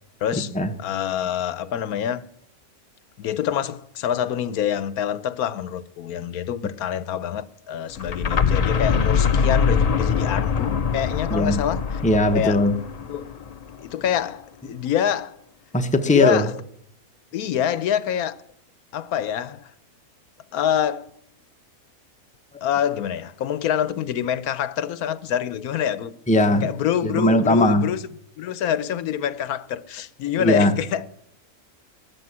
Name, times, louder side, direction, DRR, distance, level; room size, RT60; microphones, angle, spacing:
voice 1, 0.2-2.3 3.2-12.0 12.3-12.6 13.0-13.3 13.8-15.4 16.0-16.5 17.3-18.4 18.9-19.7 20.5-21.1 22.6-26.2 26.6-28.1 28.4-31.1, left 9 dB, 85° left, 1.2 m, -26 dB
sound 1, 7.9-13.7, left 6 dB, 40° left, 0.5 m, -23 dB
voice 2, 11.3-11.6 12.0-12.8 15.7-16.5 26.3-26.7 27.0-27.9 30.4-30.7, left 1 dB, 5° left, 0.8 m, -19 dB
13.5 x 8.6 x 9.7 m
omnidirectional pair, 1.5 m